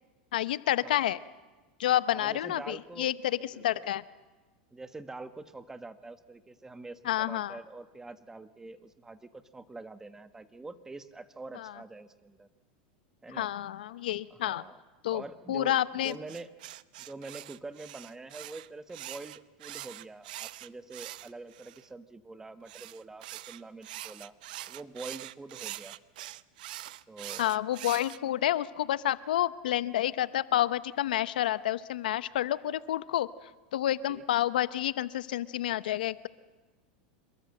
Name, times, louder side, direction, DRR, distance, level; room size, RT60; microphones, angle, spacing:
voice 1, 0.3-1.2 1.8-4.0 7.0-7.6 11.5-11.8 13.3-14.6 15.0-15.2 15.5-16.1 27.4-33.3 33.7-36.3, left 13 dB, 85° left, 16 dB, 0.8 m, -29 dB
voice 2, 2.1-3.1 3.5-3.9 4.7-12.5 13.2-13.5 14.3-14.8 15.1-16.5 17.0-24.3 24.7-26.0 27.1-27.5 34.1-34.2, right 3 dB, 10° right, 11 dB, 1.4 m, -45 dB
sound 1, 16.0-21.8 22.7-28.2, right 15 dB, 75° right, 0.7 m, -44 dB
27.0 x 22.0 x 7.8 m, 1.2 s
supercardioid pair, 120°, 5 cm